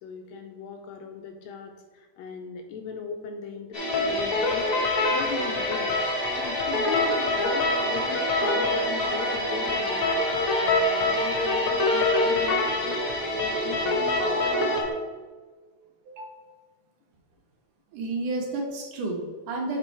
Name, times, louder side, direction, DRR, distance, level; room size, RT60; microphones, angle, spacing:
voice 1, 0.0-5.9 6.3-14.4, left 5 dB, 80° left, 4 dB, 1.7 m, -38 dB
sound 1, 3.7-14.8, equal, 35° left, 1.0 m, -30 dB
sound 2, 3.9-14.9, left 2 dB, 65° left, 1.4 m, -26 dB
voice 2, 17.9-19.8, right 2 dB, 85° right, 0 dB, 2.7 m, -31 dB
7.5 x 4.5 x 4.5 m, 1.4 s
omnidirectional pair, 3.5 m